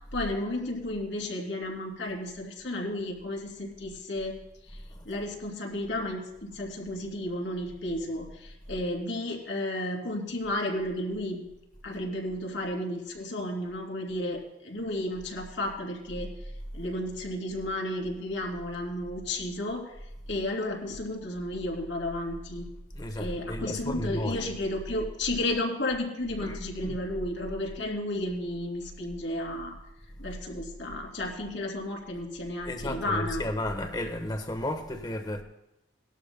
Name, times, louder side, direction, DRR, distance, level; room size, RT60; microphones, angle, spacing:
voice 1, 0.1-4.3 5.1-11.5 11.8-16.3 16.7-19.9 20.3-22.7 23.2-29.7 30.2-33.4, left 1 dB, 75° left, 2.7 m, -33 dB
voice 2, 4.9-5.2 22.9-24.5 26.4-27.0 32.6-35.4, left 1 dB, 20° left, 1.1 m, -33 dB
19.5 x 12.0 x 2.2 m
head